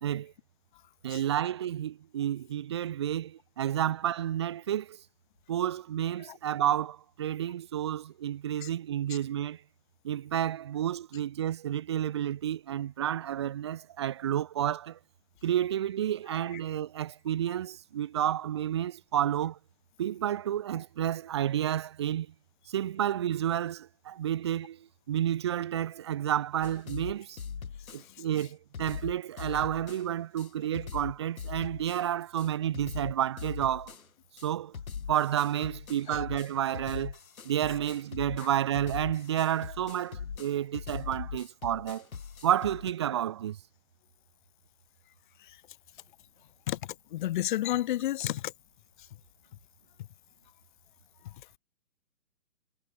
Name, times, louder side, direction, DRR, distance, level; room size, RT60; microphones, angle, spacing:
voice 1, 0.0-0.3 1.0-5.0 5.5-9.6 10.0-15.0 15.4-19.6 20.0-22.3 22.7-24.8 25.1-27.4 27.9-33.9 34.4-34.7 35.1-37.1 37.4-42.0 42.4-43.6, right 11 dB, 20° right, 0.6 m, -30 dB
sound 1, 26.6-28.0 28.4-28.5 28.7-30.0 30.4-30.5 30.7-32.0 32.4-32.5 32.7-34.0 34.4-34.5 34.7-42.9, left 6 dB, 75° left, 4.1 m, -41 dB
voice 2, 47.1-48.4, left 14 dB, 35° left, 2.1 m, -30 dB
hypercardioid pair, 155°, 42 cm